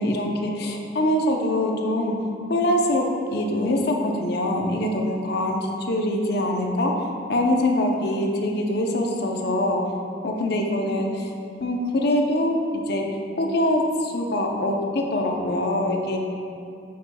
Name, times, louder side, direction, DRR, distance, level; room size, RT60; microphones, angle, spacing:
voice 1, 0.0-2.2 2.5-3.0 3.3-9.8 10.2-11.3 11.6-12.5 12.9-13.0 13.4-16.2, left 1 dB, 60° left, 1 dB, 0.7 m, -24 dB
6.8 x 6.4 x 2.3 m, 2.4 s
head